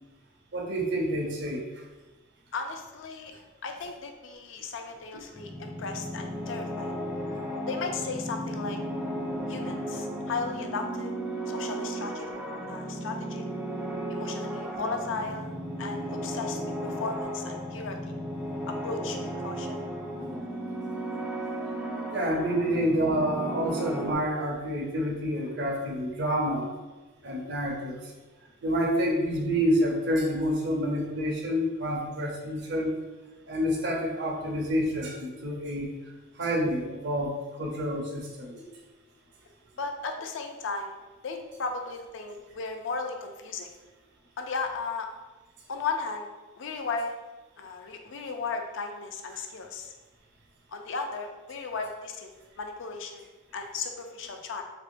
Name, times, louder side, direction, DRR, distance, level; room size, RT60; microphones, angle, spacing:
voice 1, 0.5-1.6 22.1-26.7 27.2-28.0 28.6-32.9 33.5-35.9 36.4-38.6, equal, 55° right, -1 dB, 0.6 m, -28 dB
voice 2, 2.5-3.3 3.6-6.9 7.7-8.8 9.5-11.1 11.5-12.4 12.7-13.4 14.1-15.5 15.8-18.0 18.8-19.7 23.5-23.7 39.8-43.7 44.4-45.1 45.7-46.3 46.6-47.1 47.6-49.9 50.7-52.3 52.6-54.6, left 4 dB, 60° left, 4 dB, 0.4 m, -35 dB
sound 1, 5.3-24.1, right 1 dB, 5° right, 0.3 m, -35 dB
3.5 x 2.8 x 2.5 m, 1.2 s
head